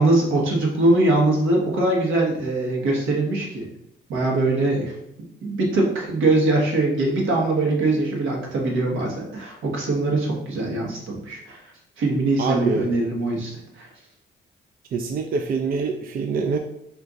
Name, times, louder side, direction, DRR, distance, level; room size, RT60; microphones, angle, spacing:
voice 1, 0.0-3.7 4.1-5.0 5.4-11.6 12.0-13.9, right 2 dB, 80° right, -1 dB, 1.2 m, -22 dB
voice 2, 12.4-12.8 14.9-16.6, right 4 dB, 50° right, 6 dB, 0.4 m, -25 dB
4.3 x 2.4 x 3.9 m, 0.78 s
cardioid pair, 90°, 20 cm